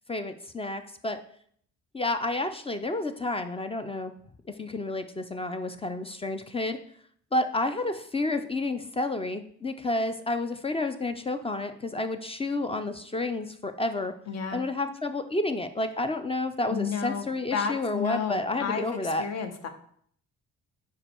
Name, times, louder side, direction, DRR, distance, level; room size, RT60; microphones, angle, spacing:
voice 1, 0.1-1.2 1.9-4.1 4.6-6.8 7.3-14.1 14.5-19.2, left 2 dB, 20° left, 8 dB, 0.4 m, -30 dB
voice 2, 14.3-14.6 16.7-19.7, left 6 dB, 55° left, 7 dB, 0.9 m, -32 dB
4.9 x 4.5 x 4.4 m, 0.63 s
cardioid pair, 90°, 30 cm